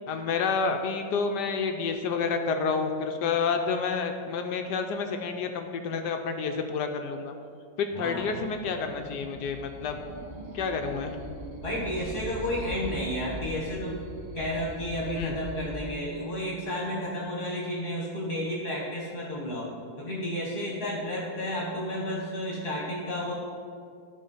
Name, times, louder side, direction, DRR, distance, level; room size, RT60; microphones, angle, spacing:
voice 1, 0.1-7.3 7.8-10.0 10.5-11.2 15.2-15.4, left 5 dB, 75° left, 5 dB, 1.1 m, -29 dB
sound 1, 7.9-15.8, equal, 50° right, 2.1 m, -41 dB
voice 2, 11.6-14.0 14.3-19.7 20.0-23.3, equal, 30° left, -4 dB, 1.3 m, -32 dB
12.0 x 4.1 x 5.4 m, 2.3 s
omnidirectional pair, 2.0 m